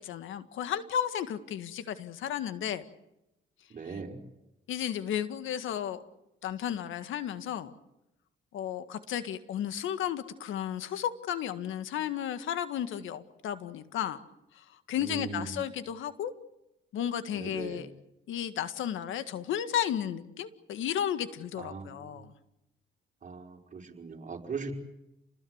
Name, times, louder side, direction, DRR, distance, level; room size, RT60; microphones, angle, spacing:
voice 1, 0.0-2.8 4.7-6.0 6.4-7.7 8.5-14.2 14.5-16.3 16.9-17.9 18.3-22.3, left 10 dB, 80° left, 11 dB, 1.9 m, -33 dB
voice 2, 3.7-4.3 15.0-15.6 17.3-17.8 21.6-22.3 23.2-24.7, right 4 dB, 40° right, 2 dB, 5.4 m, -39 dB
29.5 x 20.5 x 8.1 m, 0.89 s
cardioid pair, 90°, 20 cm